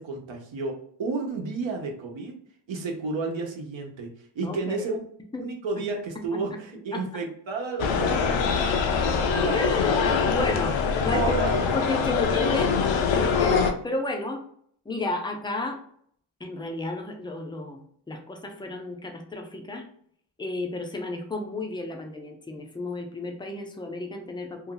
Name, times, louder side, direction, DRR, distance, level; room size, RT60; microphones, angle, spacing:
voice 1, 0.0-2.4 2.7-5.0 5.4-8.7 9.4-9.6 11.1-11.7, right 3 dB, 75° right, 2 dB, 0.9 m, -32 dB
voice 2, 4.4-4.7 5.3-5.4 6.9-7.0 9.1-9.2 9.5-11.2 11.7-14.4 14.9-15.8 16.4-19.8 20.4-24.7, left 2 dB, 10° left, 3 dB, 0.4 m, -32 dB
sound 1, 7.8-13.7, left 5 dB, 75° left, 0.6 m, -23 dB
2.8 x 2.3 x 3.7 m, 0.63 s
wide cardioid pair, 145°, 46 cm